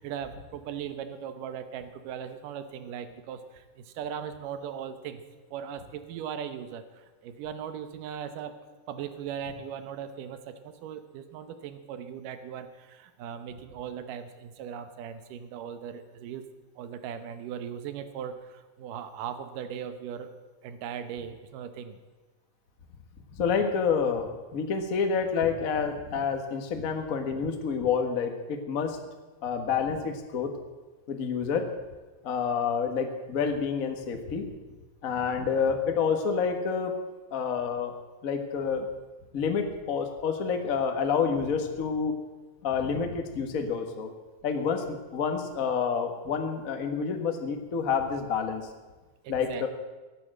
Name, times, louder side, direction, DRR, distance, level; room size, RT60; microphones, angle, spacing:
voice 1, 0.0-5.2 5.5-8.6 8.9-16.4 16.8-20.3 20.6-22.0 49.2-49.7, right 8 dB, 75° right, 10 dB, 2.6 m, -38 dB
voice 2, 23.3-29.0 29.4-30.5 31.1-31.7 32.2-34.4 35.0-36.9 37.3-37.9 38.2-38.9 39.3-42.2 42.6-44.1 44.4-48.7 49.3-49.7, left 6 dB, 65° left, 5 dB, 0.8 m, -28 dB
16.5 x 9.1 x 7.6 m, 1.2 s
omnidirectional pair, 3.9 m